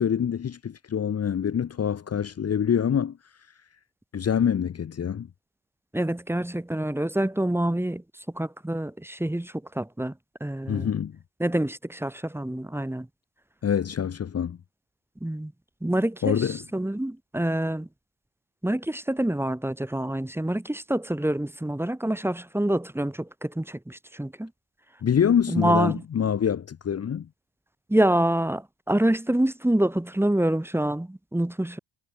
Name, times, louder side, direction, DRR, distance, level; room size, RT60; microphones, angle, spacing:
voice 1, 0.0-3.2 4.1-5.3 10.7-11.2 13.6-14.6 16.2-16.6 25.0-27.3, left 8 dB, 35° left, 1.1 m, -25 dB
voice 2, 5.9-8.0 8.3-10.1 10.4-10.9 11.4-13.1 15.2-15.5 15.8-17.9 18.6-24.5 25.5-26.0 27.9-31.8, right 1 dB, 5° right, 1.9 m, -26 dB
cardioid pair, 105°, 42 cm